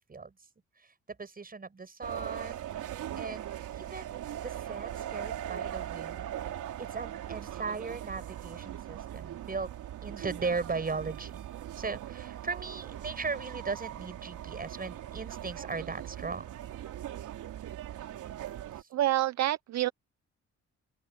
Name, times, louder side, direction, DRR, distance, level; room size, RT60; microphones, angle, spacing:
voice 1, 0.8-2.7 3.2-6.5 6.8-9.7 10.0-11.4 11.8-16.6 18.8-18.9, right 4 dB, 30° right, 7.9 m, -38 dB
sound 1, 2.0-18.8, right 11 dB, 80° right, 3.9 m, -40 dB
voice 2, 18.9-19.9, right 14 dB, 60° right, 0.6 m, -27 dB
open air
cardioid pair, 90°, 30 cm